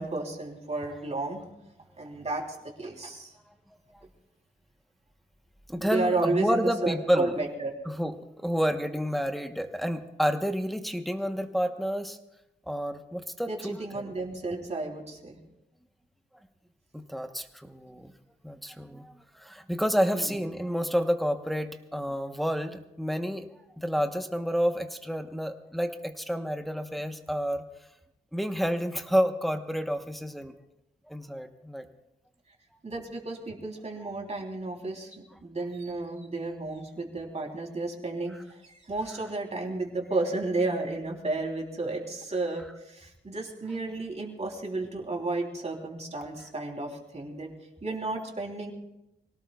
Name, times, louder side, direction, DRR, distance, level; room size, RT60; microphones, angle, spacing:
voice 1, 0.0-1.4 2.0-2.4 2.8-3.3 5.8-7.7 13.5-15.4 20.1-20.3 32.8-38.3 38.6-47.5 47.8-48.7, right 2 dB, 35° right, 0 dB, 3.3 m, -32 dB
voice 2, 5.7-7.3 7.9-12.2 12.7-14.1 16.9-18.1 18.4-23.5 23.8-27.7 28.3-30.5 31.1-31.9 34.0-34.1, equal, ahead, 6 dB, 1.0 m, -29 dB
25.5 x 18.0 x 2.4 m, 0.89 s
wide cardioid pair, 105°, 19 cm